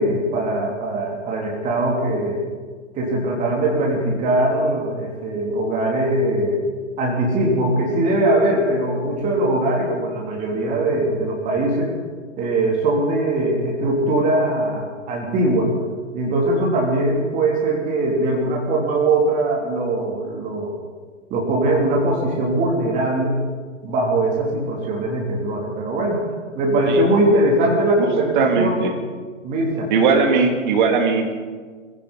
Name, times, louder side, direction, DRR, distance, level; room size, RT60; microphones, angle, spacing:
voice 1, 0.0-2.4 2.9-6.6 7.0-11.9 12.4-15.7 16.1-20.7 21.3-23.4 23.8-26.2 26.5-28.8 29.4-29.9, right 1 dB, 20° right, -1 dB, 3.0 m, -21 dB
voice 2, 28.3-28.9 29.9-31.3, right 5 dB, 40° right, 3 dB, 2.5 m, -19 dB
21.5 x 16.0 x 4.1 m, 1.5 s
figure-of-eight pair, 120°, 39 cm